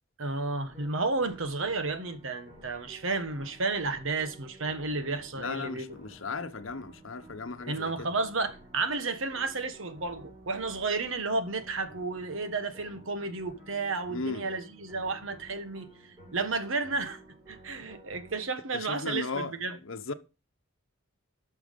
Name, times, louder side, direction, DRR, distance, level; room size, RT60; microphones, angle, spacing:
voice 1, 0.2-5.9 7.7-15.9 16.3-17.2 17.5-19.8, right 3 dB, 65° right, 1.4 m, -32 dB
sound 1, 0.6-18.4, right 1 dB, 20° right, 6.3 m, -53 dB
voice 2, 5.3-8.1 14.1-14.5 18.7-19.6 19.8-20.1, left 3 dB, 65° left, 1.0 m, -36 dB
11.5 x 6.3 x 5.3 m
head